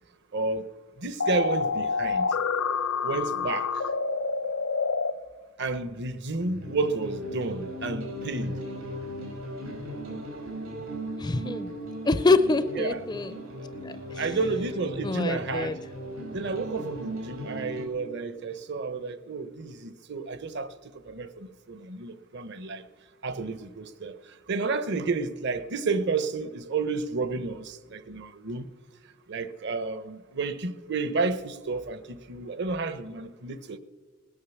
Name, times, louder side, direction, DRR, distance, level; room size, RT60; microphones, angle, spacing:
voice 1, 0.3-0.7 1.0-2.3 3.0-3.7 5.6-8.5 12.7-13.0 13.6-13.7 14.1-15.8 16.3-20.7 21.1-22.8 23.2-24.2 24.5-28.7 29.3-33.8, right 3 dB, 60° right, 0.9 m, -31 dB
sound 1, 1.2-5.1, left 5 dB, 80° left, 1.0 m, -27 dB
sound 2, 6.4-17.8, equal, 85° right, 5.0 m, -37 dB
voice 2, 11.2-11.7 12.0-13.3 13.8-13.9 15.0-15.7, left 3 dB, 20° left, 0.4 m, -25 dB
19.5 x 10.0 x 7.2 m
head